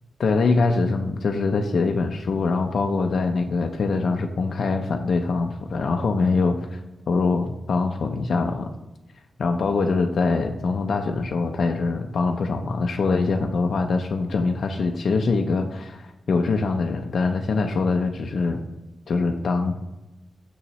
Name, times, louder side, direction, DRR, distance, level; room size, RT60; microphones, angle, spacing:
voice 1, 0.2-6.8 7.1-8.7 9.4-18.6 19.1-19.7, left 4 dB, 60° left, 4 dB, 0.4 m, -23 dB
6.9 x 6.4 x 3.0 m, 1.0 s
wide cardioid pair, 165°, 0 cm